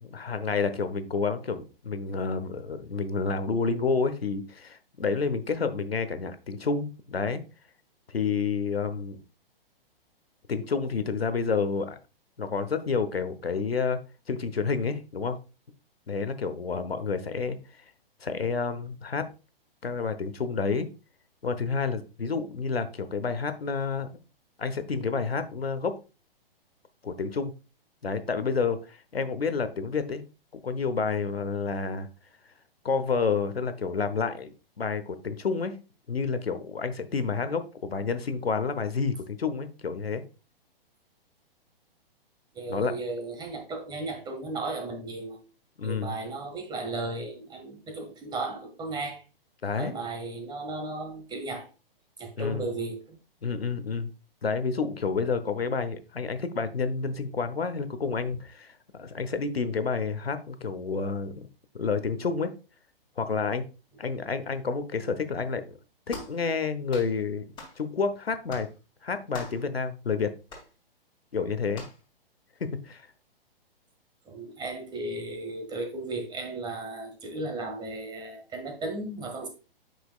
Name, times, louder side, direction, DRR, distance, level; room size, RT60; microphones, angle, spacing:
voice 1, 0.0-7.4 8.1-9.2 10.5-12.0 12.4-14.0 14.3-15.4 16.1-17.6 18.2-19.3 19.8-20.9 21.4-24.2 24.6-26.0 27.0-27.5 28.0-30.2 30.5-32.1 32.8-35.7 36.1-40.2 42.7-42.9 45.8-46.1 49.6-49.9 52.4-52.6 53.4-54.1 54.4-61.4 61.7-62.5 63.2-63.6 64.0-65.8 66.1-67.4 67.8-68.7 69.0-70.3 71.3-71.8 72.6-73.1, left 5 dB, 80° left, 10 dB, 1.0 m, -29 dB
voice 2, 42.5-45.4 45.8-49.2 49.8-51.7 52.2-53.2 74.2-79.5, right 2 dB, 15° right, 3 dB, 1.7 m, -35 dB
sound 1, 66.1-66.4 66.9-67.1 67.6-67.8 68.5-68.7 69.3-69.7 70.5-70.7 71.7-72.0, left 3 dB, 15° left, 2.6 m, -42 dB
8.3 x 6.0 x 2.3 m, 0.32 s
figure-of-eight pair, 120°, 30 cm